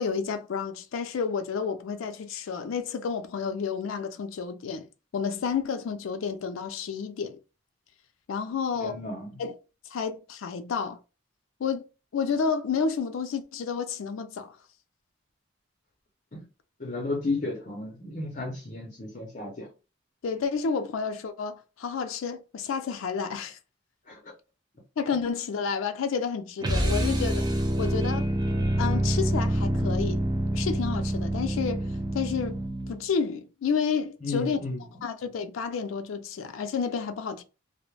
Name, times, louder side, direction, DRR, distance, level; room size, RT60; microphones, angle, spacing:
voice 1, 0.0-4.9 5.1-7.4 8.3-9.0 9.4-9.5 9.9-11.0 11.6-11.9 12.1-14.5 20.2-23.6 25.0-28.2 28.8-30.3 30.5-32.6 32.9-34.6 35.0-37.4, left 6 dB, 85° left, 0.4 m, -30 dB
voice 2, 8.8-9.4 16.3-16.4 16.8-19.7 24.1-24.3 34.2-34.8, left 3 dB, 40° left, 0.7 m, -33 dB
sound 1, 26.6-33.1, right 1 dB, 20° right, 0.3 m, -27 dB
2.3 x 2.1 x 3.1 m
head